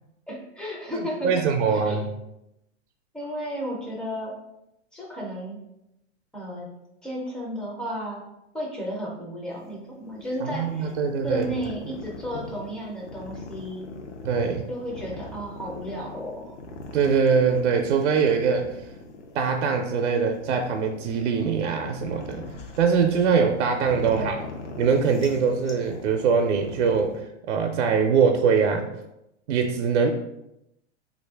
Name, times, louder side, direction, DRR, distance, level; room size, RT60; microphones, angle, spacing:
voice 1, 0.3-2.0 3.1-4.4 4.9-5.6 6.3-6.7 7.0-8.2 8.5-10.9 11.2-13.9 14.7-16.6 24.0-24.5, equal, ahead, -3 dB, 0.3 m, -33 dB
voice 2, 0.9-2.1 10.4-11.4 14.2-14.7 16.9-18.8 19.3-22.4 22.8-24.4 24.8-28.9 29.5-30.1, right 6 dB, 70° right, 4 dB, 0.5 m, -23 dB
sound 1, 9.5-27.2, left 2 dB, 85° left, 0.7 m, -41 dB
3.2 x 2.5 x 3.3 m, 0.85 s
hypercardioid pair, 130°, 35 cm